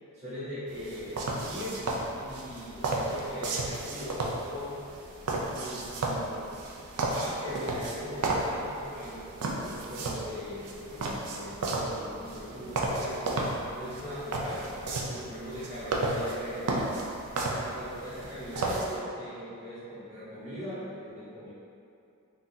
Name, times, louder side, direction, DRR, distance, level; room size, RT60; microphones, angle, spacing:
voice 1, 0.1-1.8 2.2-4.8 5.4-6.5 7.1-13.5 13.7-16.9 17.4-21.5, equal, 30° right, -14 dB, 1.1 m, -40 dB
sound 1, 0.7-19.0, right 2 dB, 90° right, 0.4 m, -33 dB
3.8 x 2.4 x 2.7 m, 2.6 s
head